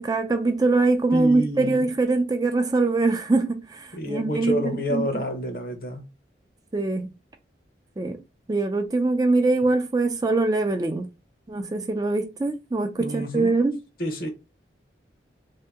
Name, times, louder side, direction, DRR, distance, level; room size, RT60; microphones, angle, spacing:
voice 1, 0.0-5.1 6.7-7.1 8.0-8.2 8.5-11.0 11.5-13.8, right 3 dB, 20° right, 0.4 m, -23 dB
voice 2, 1.1-1.8 3.9-6.0 13.0-13.6 14.0-14.3, equal, 55° left, 0.9 m, -28 dB
3.2 x 2.8 x 3.5 m
head